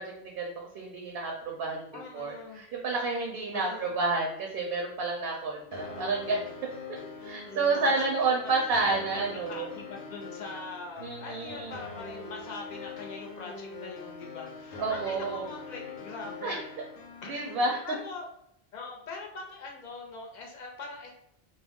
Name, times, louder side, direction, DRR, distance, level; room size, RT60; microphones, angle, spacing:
voice 1, 0.0-1.9 2.1-6.4 7.2-9.7 11.0-11.7 14.8-15.4 16.4-16.6 17.3-17.8, right 3 dB, 65° right, 0 dB, 0.7 m, -30 dB
voice 2, 1.9-2.6 3.5-3.9 7.8-16.6 17.2-17.5 17.8-18.2 18.7-21.1, left 4 dB, 50° left, 0 dB, 0.6 m, -42 dB
sound 1, 5.7-17.7, left 3 dB, 90° left, 0.9 m, -43 dB
2.3 x 2.1 x 3.4 m, 0.74 s
omnidirectional pair, 1.1 m